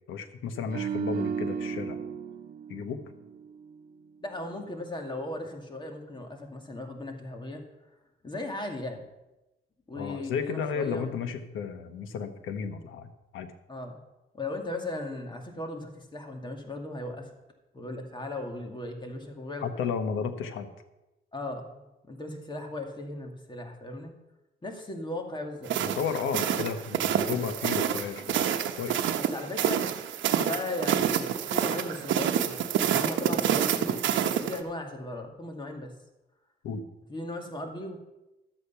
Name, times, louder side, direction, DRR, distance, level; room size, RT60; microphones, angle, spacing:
voice 1, 0.1-2.0 2.7-3.0 10.0-13.5 19.6-20.7 25.8-28.4 28.7-29.1 36.6-36.8, left 6 dB, 85° left, 9 dB, 1.2 m, -33 dB
sound 1, 0.7-4.0 4.3-4.5, right 7 dB, 50° right, 0.5 m, -35 dB
voice 2, 4.2-7.6 8.2-9.0 9.9-11.1 13.7-14.0 14.3-17.3 17.7-19.7 21.3-24.2 24.6-25.7 29.2-29.8 30.4-35.9 37.1-38.0, left 2 dB, 25° left, 3 dB, 2.3 m, -37 dB
Quick walk in snow, 25.7-34.6, right 9 dB, 70° right, 1.0 m, -28 dB
12.5 x 8.3 x 5.7 m, 0.99 s
cardioid pair, 90°, 20 cm